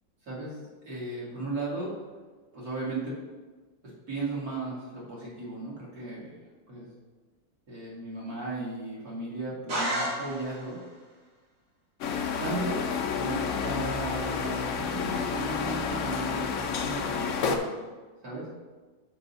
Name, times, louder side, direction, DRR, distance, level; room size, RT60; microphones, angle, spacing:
voice 1, 0.2-1.9 2.5-3.2 3.8-6.3 6.7-6.9 7.7-10.8 12.4-12.8 13.1-17.8 18.2-18.5, right 2 dB, 55° right, -6 dB, 2.6 m, -36 dB
sound 1, 9.7-10.8, right 1 dB, 80° right, 3.1 m, -31 dB
sound 2, 12.0-17.6, left 6 dB, 70° left, 0.7 m, -30 dB
5.2 x 4.7 x 5.4 m, 1.3 s
omnidirectional pair, 2.0 m